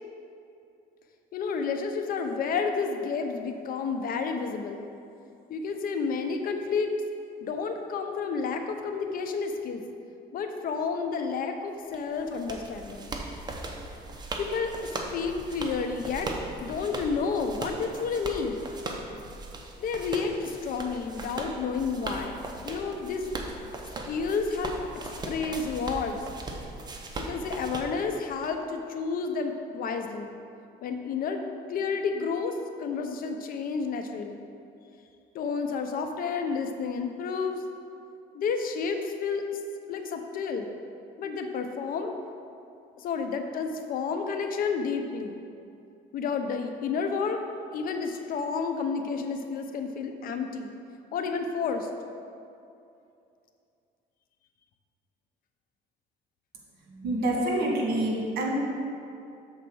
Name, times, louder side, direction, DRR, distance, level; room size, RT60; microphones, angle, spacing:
voice 1, 1.3-4.8 5.5-6.9 7.4-9.8 10.3-13.1 14.4-16.3 16.6-18.6 19.8-23.3 24.0-24.8 25.3-26.2 27.2-30.3 30.8-31.4 31.7-34.4 35.3-37.6 38.3-39.6 39.9-40.7 41.2-42.1 43.0-45.4 46.1-47.4 47.7-50.7 51.1-51.9, left 5 dB, 55° left, 5 dB, 0.7 m, -30 dB
sound 1, 11.9-28.5, right 2 dB, 25° right, 0.8 m, -38 dB
voice 2, 57.0-58.5, right 1 dB, 65° right, -1 dB, 1.7 m, -27 dB
7.1 x 4.1 x 6.2 m, 2.6 s
cardioid pair, 110°, 17 cm